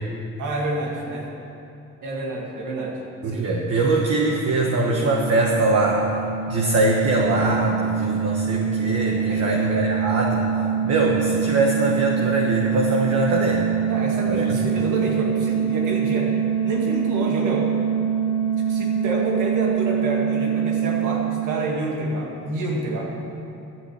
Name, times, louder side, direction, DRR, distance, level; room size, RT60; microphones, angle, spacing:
voice 1, 0.4-1.3 2.0-3.0 3.3-3.4 9.1-9.6 13.9-16.3 16.6-17.7 18.7-23.1, right 2 dB, 85° right, -1 dB, 2.2 m, -28 dB
voice 2, 3.2-6.0 6.5-10.5 10.8-13.7 14.3-14.6, right 2 dB, 55° right, -1 dB, 1.4 m, -22 dB
sound 1, 4.6-22.1, right 7 dB, 80° left, 1.9 m, -24 dB
11.0 x 7.7 x 8.3 m, 2.7 s
cardioid pair, 90°, 30 cm